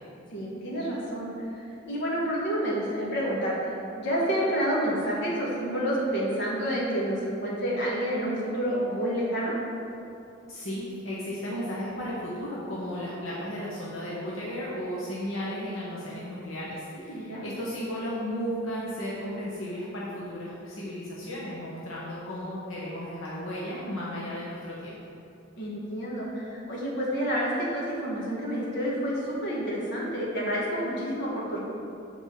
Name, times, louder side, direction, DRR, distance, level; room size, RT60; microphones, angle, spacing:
voice 1, 0.3-3.6 4.0-9.5 16.9-17.5 25.6-31.6, equal, 60° left, -5 dB, 1.7 m, -29 dB
voice 2, 10.5-24.9, equal, 85° left, -7 dB, 1.0 m, -34 dB
7.4 x 4.3 x 4.6 m, 2.7 s
head